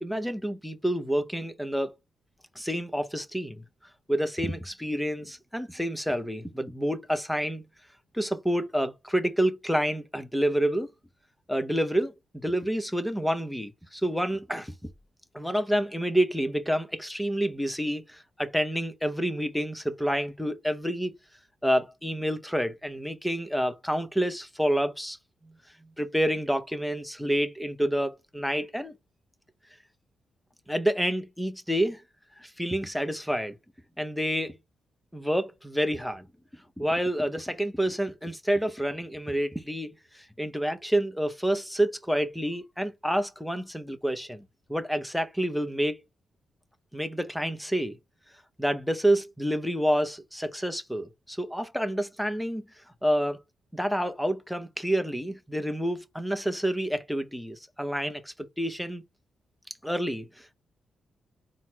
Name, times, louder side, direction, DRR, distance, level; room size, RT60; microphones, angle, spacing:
voice 1, 0.0-2.0 2.6-3.6 4.1-7.6 8.1-10.9 11.5-12.1 12.4-14.9 15.3-21.1 21.6-25.2 26.0-28.9 30.7-32.0 32.4-33.6 34.0-34.6 35.1-36.2 36.8-44.4 44.7-46.0 46.9-48.0 48.6-52.6 53.0-53.4 53.7-59.0 59.8-60.5, equal, 5° left, 0.8 m, -28 dB
4.1 x 2.1 x 4.4 m
supercardioid pair, 60°, 0 cm